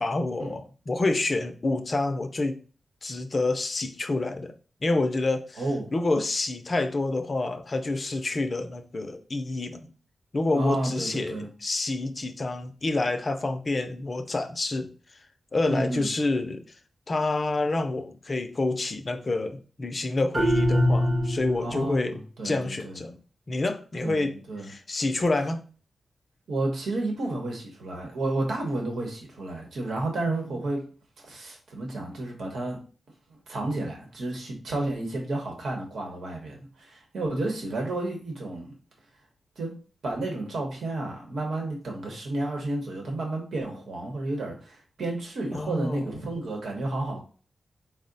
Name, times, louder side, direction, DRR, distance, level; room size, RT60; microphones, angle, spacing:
voice 1, 0.0-2.6 3.0-4.5 4.8-5.6 5.9-9.9 10.3-14.9 15.5-16.6 17.1-22.2 22.4-23.2 23.5-24.4 24.6-25.6 30.3-30.6 45.5-46.1, left 2 dB, 35° left, 7 dB, 0.4 m, -28 dB
voice 2, 5.6-5.9 10.5-11.5 15.7-16.1 21.6-23.0 24.0-24.7 26.5-30.9 31.2-32.8 33.3-38.7 39.6-39.7 40.0-47.2, right 2 dB, 80° right, 1 dB, 1.0 m, -31 dB
sound 1, 20.3-21.8, equal, 40° right, 0.8 m, -23 dB
4.7 x 2.1 x 3.9 m, 0.38 s
wide cardioid pair, 160°, 0 cm